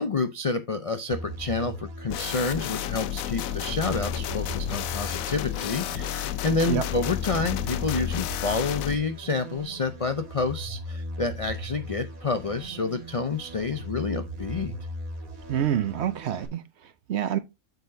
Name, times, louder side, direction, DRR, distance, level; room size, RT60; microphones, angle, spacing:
voice 1, 0.0-14.7, left 3 dB, 50° left, 0.4 m, -29 dB
sound 1, 1.1-16.5, equal, 75° right, 2.2 m, -38 dB
sound 2, 2.1-8.9, left 13 dB, 75° left, 1.0 m, -31 dB
voice 2, 15.5-17.4, right 10 dB, 60° right, 0.8 m, -27 dB
7.9 x 6.5 x 2.6 m
omnidirectional pair, 1.5 m